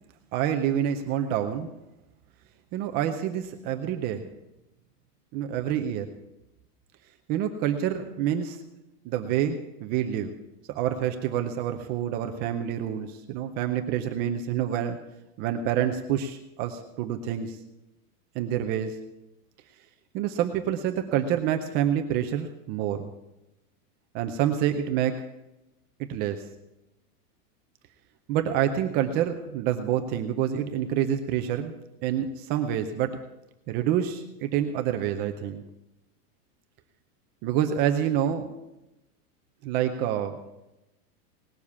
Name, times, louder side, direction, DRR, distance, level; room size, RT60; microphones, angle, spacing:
voice 1, 0.3-1.7 2.7-4.3 5.3-6.1 7.3-8.6 9.0-10.3 10.7-15.0 15.4-17.6 18.3-19.0 20.1-23.1 24.1-25.2 26.0-26.4 28.3-31.7 32.0-33.2 33.7-35.6 37.4-38.5 39.6-40.4, right 10 dB, 20° right, 6 dB, 0.5 m, -27 dB
18.5 x 7.1 x 8.4 m, 0.93 s
supercardioid pair, 155°, 47 cm